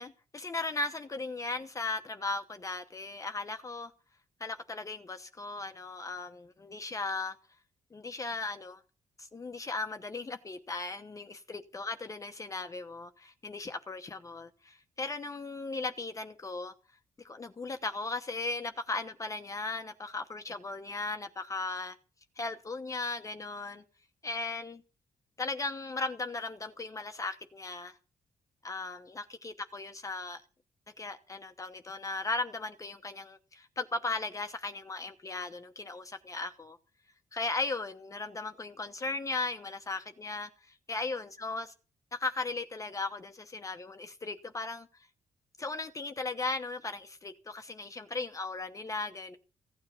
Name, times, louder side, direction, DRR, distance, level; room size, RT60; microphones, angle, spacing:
voice 1, 0.0-3.9 4.4-7.4 7.9-8.8 9.2-16.7 17.2-22.0 22.4-23.8 24.2-24.8 25.4-28.0 28.6-30.4 31.0-36.8 37.3-41.7 42.1-44.9 45.6-49.4, left 3 dB, 25° left, 1.0 m, -37 dB
16.0 x 9.6 x 5.8 m
wide cardioid pair, 135°, 13 cm